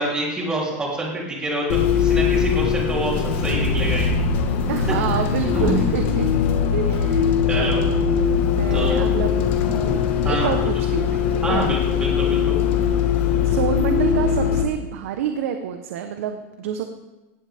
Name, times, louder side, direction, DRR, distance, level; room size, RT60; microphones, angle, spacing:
voice 1, 0.0-4.2 5.5-5.8 7.5-7.8 8.7-9.1 10.2-10.5 11.4-12.6, right 1 dB, 10° right, -3 dB, 3.8 m, -26 dB
Bus, 1.7-14.6, left 7 dB, 55° left, 1.8 m, -21 dB
voice 2, 4.7-6.3 6.7-7.9 8.5-11.7 12.0-12.1 13.4-16.8, right 8 dB, 80° right, 6 dB, 1.2 m, -28 dB
18.5 x 15.5 x 3.7 m, 1.1 s
supercardioid pair, 175°, 7 cm